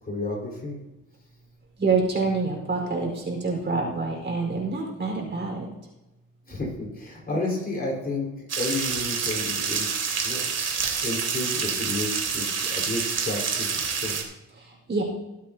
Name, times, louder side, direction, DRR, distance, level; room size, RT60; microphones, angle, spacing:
voice 1, 0.0-0.8 6.5-8.3 8.6-9.9 10.2-10.4 11.0-14.2, left 2 dB, 30° left, -1 dB, 4.8 m, -31 dB
voice 2, 1.8-5.7 14.6-15.0, right 4 dB, 35° right, 0 dB, 4.7 m, -27 dB
sound 1, 8.5-14.2, right 6 dB, 55° right, 2.6 m, -28 dB
22.5 x 8.5 x 2.9 m, 1.0 s
cardioid pair, 90°, 30 cm